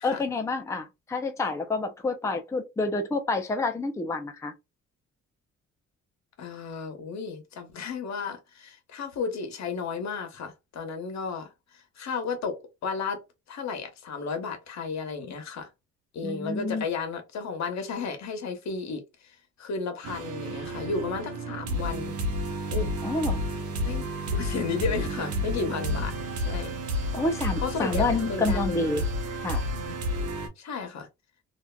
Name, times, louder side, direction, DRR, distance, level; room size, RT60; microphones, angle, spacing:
voice 1, 0.0-4.5 16.2-16.9 23.0-23.4 27.1-29.1 29.4-29.6, left 2 dB, 10° left, 0.5 m, -28 dB
voice 2, 6.4-13.2 13.5-15.7 16.1-22.2 22.7-22.9 23.8-26.2 26.4-27.1 27.6-28.8 29.7-30.0 30.6-31.1, left 5 dB, 65° left, 0.9 m, -33 dB
sound 1, 20.0-30.5, equal, 75° right, 0.9 m, -31 dB
2.8 x 2.4 x 2.2 m
cardioid pair, 90°, 30 cm